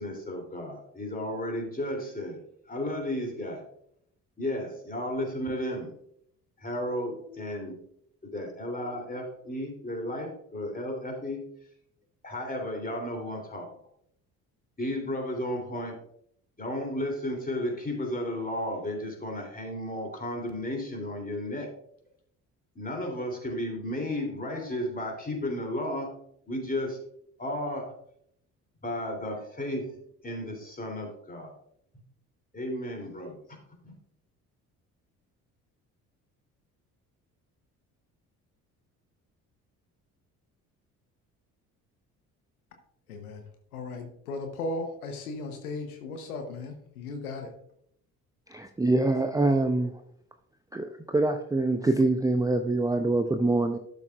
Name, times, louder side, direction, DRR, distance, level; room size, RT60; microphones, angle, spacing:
voice 1, 0.0-2.4 2.7-3.6 4.4-5.9 6.6-7.8 8.2-11.4 12.2-13.7 14.8-16.0 16.6-21.7 22.7-26.1 26.5-27.0 27.4-27.9 28.8-29.9 30.2-31.5 32.5-33.6 33.8-33.9, left 1 dB, 20° left, 3.2 m, -33 dB
voice 2, 43.1-43.4 43.7-47.5, left 2 dB, 75° left, 1.1 m, -36 dB
voice 3, 48.5-49.9 50.7-53.8, right 2 dB, 10° right, 0.6 m, -25 dB
12.0 x 6.7 x 2.5 m
figure-of-eight pair, 50°, 45 cm